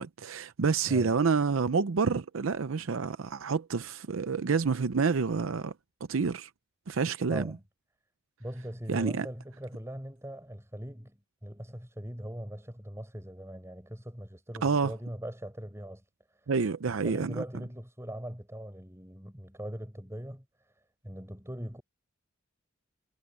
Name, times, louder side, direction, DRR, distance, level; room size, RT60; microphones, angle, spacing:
voice 1, 0.0-5.7 6.1-6.5 6.9-7.5 8.9-9.3 14.6-14.9 16.5-17.4, right 5 dB, 85° right, 0.6 m, -28 dB
voice 2, 7.3-7.6 8.4-16.0 16.4-16.5 16.9-20.7 21.0-21.8, equal, 15° right, 5.6 m, -41 dB
head